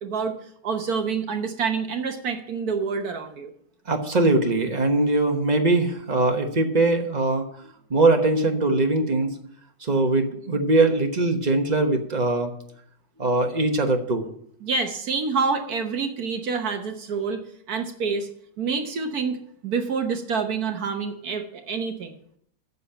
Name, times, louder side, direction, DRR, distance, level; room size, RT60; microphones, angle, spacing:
voice 1, 0.0-3.5 14.6-17.4 17.7-18.3 18.6-19.4 19.6-22.1, right 5 dB, 60° right, 6 dB, 1.4 m, -27 dB
voice 2, 3.9-7.5 7.9-9.4 9.8-12.5 13.2-14.3, right 2 dB, 30° right, 4 dB, 1.1 m, -21 dB
8.2 x 7.3 x 8.6 m, 0.68 s
omnidirectional pair, 2.0 m